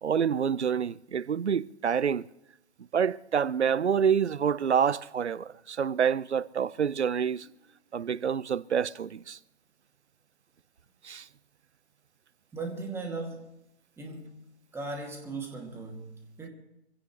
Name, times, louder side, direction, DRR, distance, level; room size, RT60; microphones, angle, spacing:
voice 1, 0.0-2.3 2.9-7.5 7.9-9.4 11.0-11.2, right 7 dB, 75° right, 0.7 m, -27 dB
voice 2, 12.5-13.5 14.0-14.4 14.7-16.5, right 3 dB, 5° right, 2.5 m, -38 dB
24.5 x 16.5 x 3.3 m
figure-of-eight pair, 130°, 34 cm